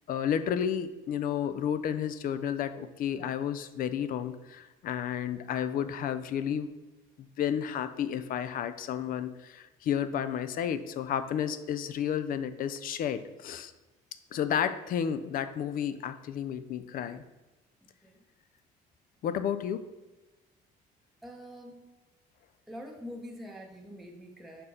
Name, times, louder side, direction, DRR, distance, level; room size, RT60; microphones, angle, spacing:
voice 1, 0.1-6.7 7.2-13.7 14.3-17.2 19.2-19.8, left 9 dB, 55° left, 11 dB, 0.4 m, -32 dB
voice 2, 21.2-21.9 22.7-24.6, equal, ahead, 1 dB, 0.7 m, -45 dB
5.0 x 4.5 x 4.2 m, 1.1 s
cardioid pair, 110°, 17 cm